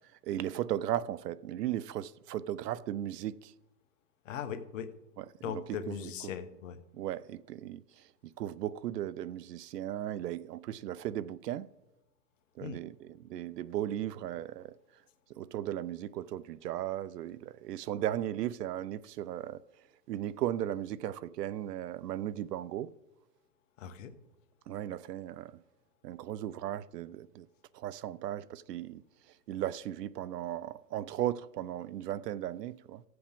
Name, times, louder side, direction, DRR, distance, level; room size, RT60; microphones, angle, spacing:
voice 1, 0.2-3.5 5.2-6.1 6.9-8.0 8.4-11.7 12.6-14.7 15.3-19.6 20.1-22.9 24.7-25.5 26.0-27.5 27.7-29.0 29.5-33.0, right 12 dB, 70° right, 0.6 m, -36 dB
voice 2, 4.2-4.9 5.4-6.8 12.6-12.8 23.8-24.1, left 8 dB, 50° left, 1.0 m, -39 dB
15.0 x 7.8 x 3.6 m
hypercardioid pair, 135°, 50 cm